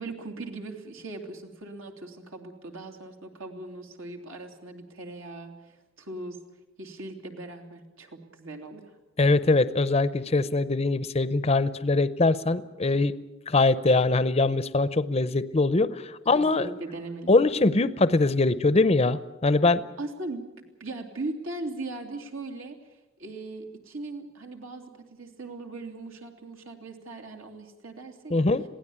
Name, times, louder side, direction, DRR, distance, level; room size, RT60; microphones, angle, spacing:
voice 1, 0.0-6.4 6.8-8.9 16.3-17.3 20.0-22.8 23.2-28.5, right 2 dB, 80° right, 3 dB, 3.0 m, -39 dB
voice 2, 9.2-13.1 13.5-16.7 17.3-19.8 28.3-28.6, left 3 dB, 30° left, 15 dB, 0.6 m, -22 dB
22.0 x 16.5 x 8.7 m, 1.0 s
head